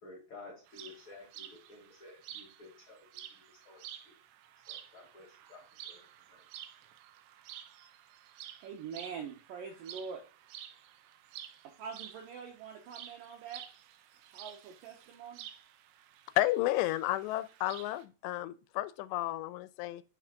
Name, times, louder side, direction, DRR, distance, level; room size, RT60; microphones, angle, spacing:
voice 1, 0.0-4.2 4.7-6.4, left 3 dB, 60° left, 1.4 m, -53 dB
sound 1, 0.7-18.0, right 11 dB, 90° right, 2.8 m, -51 dB
voice 2, 8.6-10.2 11.6-13.6 14.3-15.5, right 6 dB, 75° right, 2.1 m, -44 dB
voice 3, 16.4-20.0, left 16 dB, 85° left, 2.7 m, -32 dB
8.6 x 3.4 x 5.0 m
omnidirectional pair, 4.9 m